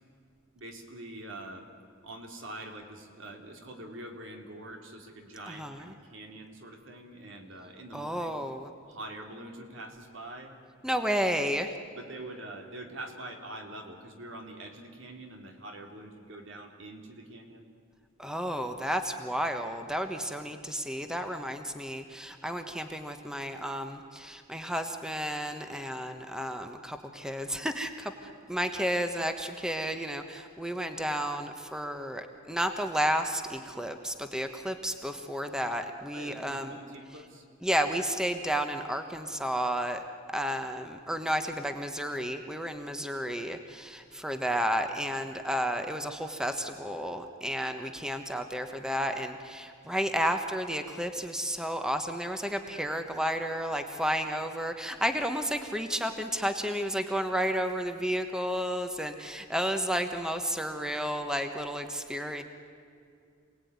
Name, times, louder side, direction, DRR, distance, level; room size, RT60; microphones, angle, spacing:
voice 1, 0.5-1.7 2.0-8.4 8.9-10.5 11.9-17.7 36.1-37.5, right 1 dB, 75° right, 3 dB, 3.2 m, -44 dB
voice 2, 5.5-5.9 7.9-8.7 10.8-11.8 18.2-36.8 37.6-40.0 40.3-62.4, equal, 5° right, 6 dB, 1.2 m, -32 dB
27.5 x 19.0 x 9.5 m, 2.4 s
head